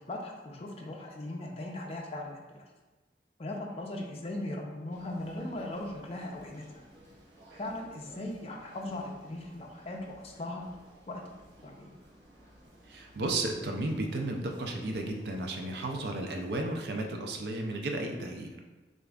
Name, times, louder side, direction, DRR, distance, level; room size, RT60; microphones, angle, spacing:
voice 1, 0.0-2.6 3.4-6.8 7.6-10.8 11.1-11.2 11.6-11.9, left 1 dB, 35° left, 0 dB, 0.6 m, -39 dB
sound 1, 4.9-16.7, right 1 dB, 85° right, 1.0 m, -56 dB
voice 2, 12.9-18.5, right 2 dB, 70° right, 2 dB, 0.5 m, -33 dB
6.5 x 2.6 x 2.4 m, 1.2 s
head